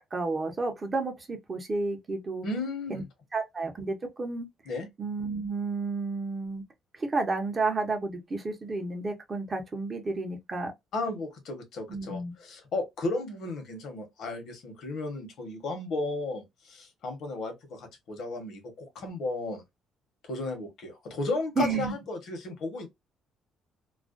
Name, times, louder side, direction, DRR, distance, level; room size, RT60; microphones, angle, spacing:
voice 1, 0.1-2.5 2.9-3.0 3.3-4.5 5.0-6.6 7.0-10.7 11.9-12.3 21.6-21.9, right 3 dB, 25° right, 0.7 m, -31 dB
voice 2, 2.4-3.0 4.7-4.9 10.9-19.6 20.2-22.9, left 2 dB, 60° left, 1.0 m, -34 dB
2.4 x 2.1 x 2.4 m
cardioid pair, 130°, 0 cm